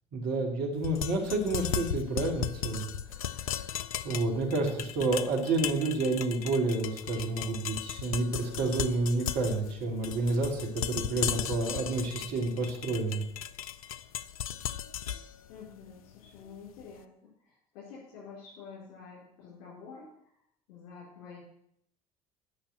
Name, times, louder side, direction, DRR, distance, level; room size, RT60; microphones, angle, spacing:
voice 1, 0.1-2.9 3.3-3.4 4.0-13.2, right 2 dB, 60° right, 2 dB, 2.6 m, -29 dB
sound 1, 0.8-16.8, left 10 dB, 80° left, 0.5 m, -37 dB
voice 2, 0.8-1.1 15.5-20.3 20.7-21.4, left 5 dB, 65° left, -8 dB, 4.6 m, -49 dB
9.9 x 6.5 x 8.5 m, 0.72 s
hypercardioid pair, 60°, 18 cm